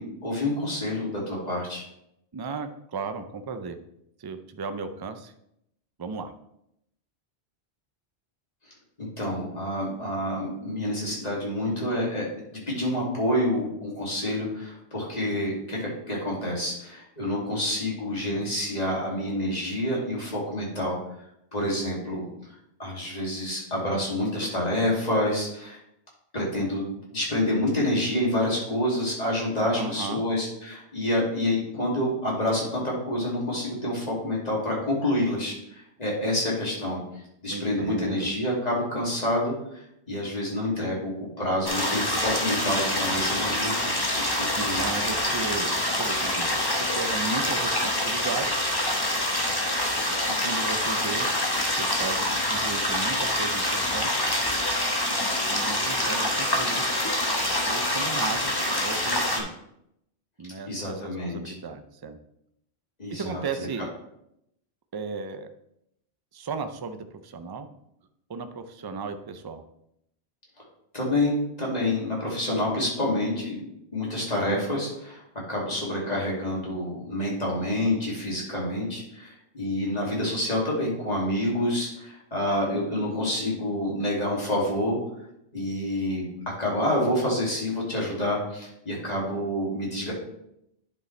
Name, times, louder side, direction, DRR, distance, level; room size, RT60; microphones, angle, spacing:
voice 1, 0.0-1.8 9.0-21.0 21.5-22.3 22.8-25.8 26.3-37.0 37.4-44.8 60.7-61.5 63.0-63.4 70.9-75.2 75.5-85.0 85.5-90.1, left 1 dB, 40° left, -4 dB, 2.6 m, -28 dB
voice 2, 2.3-3.8 4.2-5.3 6.0-6.3 29.7-30.2 37.5-38.3 44.6-48.6 50.3-51.3 51.6-54.4 55.5-56.8 57.7-58.5 58.8-59.6 60.4-62.2 63.1-63.9 64.9-65.5 66.3-67.7 68.3-69.6, right 4 dB, 35° right, 8 dB, 0.4 m, -35 dB
sound 1, 41.6-59.4, left 1 dB, 20° left, 1.2 m, -26 dB
10.5 x 5.3 x 3.2 m, 0.78 s
omnidirectional pair, 1.1 m